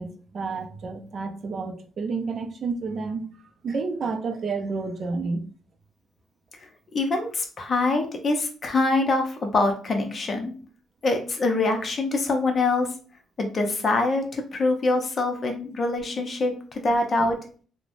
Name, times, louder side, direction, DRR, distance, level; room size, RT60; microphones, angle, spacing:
voice 1, 0.0-3.3 3.6-5.5 17.2-17.3, right 4 dB, 50° right, 0.4 m, -30 dB
voice 2, 6.9-10.5 11.0-12.9 13.4-17.4, left 2 dB, 45° left, 0.6 m, -24 dB
3.1 x 2.1 x 2.5 m
cardioid pair, 90°, 0 cm